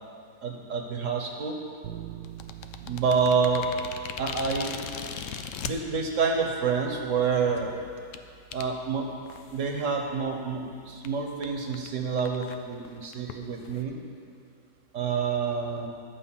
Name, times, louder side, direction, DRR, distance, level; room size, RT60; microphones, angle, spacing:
voice 1, 0.4-1.6 2.8-3.6 4.2-4.8 5.6-7.7 8.5-9.1 9.5-14.0 14.9-15.9, right 5 dB, 55° right, 2 dB, 1.2 m, -28 dB
sound 1, 1.8-11.7, right 13 dB, 80° right, 1.2 m, -48 dB
sound 2, 2.2-5.7 6.5-6.6 7.2-7.4 8.1-8.2 8.5-8.6 9.3-9.7 10.0-10.1 10.5-10.6 11.0-11.1 11.4-11.5 11.7-11.9 12.2-13.8, left 8 dB, 70° left, 0.7 m, -38 dB
11.5 x 5.3 x 7.2 m, 2.3 s
omnidirectional pair, 1.8 m